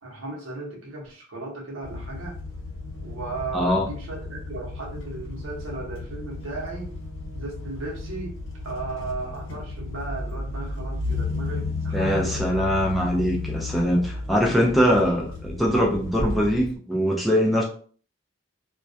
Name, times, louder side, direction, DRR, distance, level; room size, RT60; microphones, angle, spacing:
voice 1, 0.0-2.4 3.0-6.9 7.3-8.4 8.6-12.4, right 3 dB, 85° right, -1 dB, 0.8 m, -35 dB
sound 1, 1.8-16.7, left 3 dB, 80° left, 0.9 m, -33 dB
voice 2, 3.5-3.9 11.9-17.6, equal, ahead, -2 dB, 0.3 m, -22 dB
2.2 x 2.2 x 2.6 m, 0.44 s
head